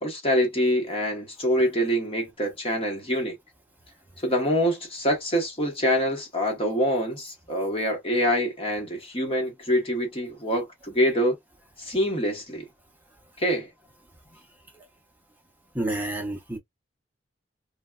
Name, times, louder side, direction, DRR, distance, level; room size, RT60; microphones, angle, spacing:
voice 1, 0.0-3.4 4.2-11.4 11.8-12.6 13.4-13.7, equal, 30° left, 1.0 m, -25 dB
voice 2, 15.7-16.6, right 1 dB, 10° right, 0.7 m, -29 dB
3.3 x 2.2 x 2.3 m
head